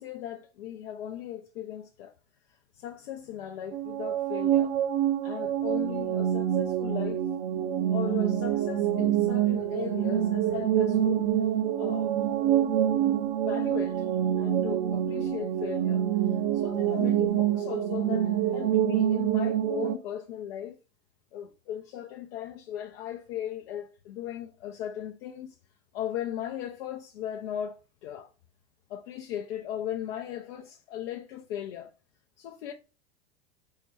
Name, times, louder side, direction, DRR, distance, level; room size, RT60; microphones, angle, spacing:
voice 1, 0.0-2.1 2.7-4.8 5.2-7.2 7.9-11.4 11.8-12.2 13.4-14.1 14.4-16.0 16.5-20.8 21.3-25.6 25.9-27.7 28.0-28.3 28.9-31.9 32.4-32.7, left 10 dB, 65° left, 0.5 m, -37 dB
sound 1, 3.7-20.0, right 10 dB, 45° right, 0.6 m, -26 dB
4.5 x 2.1 x 3.2 m
hypercardioid pair, 90°, 33 cm